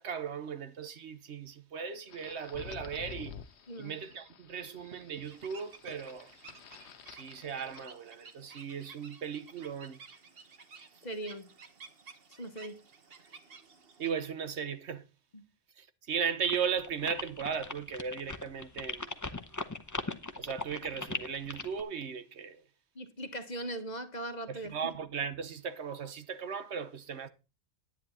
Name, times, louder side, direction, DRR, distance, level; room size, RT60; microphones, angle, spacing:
voice 1, 0.0-3.4 3.8-6.3 7.1-10.0 14.0-15.1 15.8-19.1 20.4-22.6 24.5-27.3, right 7 dB, 85° right, 1.3 m, -37 dB
sound 1, 2.1-7.9, left 7 dB, 80° left, 1.1 m, -50 dB
sound 2, 5.2-14.1, right 5 dB, 60° right, 1.4 m, -54 dB
voice 2, 11.0-11.5 12.4-12.8 15.3-15.4 22.9-24.7, right 1 dB, 40° left, 1.3 m, -39 dB
sound 3, 16.4-21.8, left 2 dB, 15° left, 0.9 m, -38 dB
10.5 x 9.9 x 4.2 m
omnidirectional pair, 1.1 m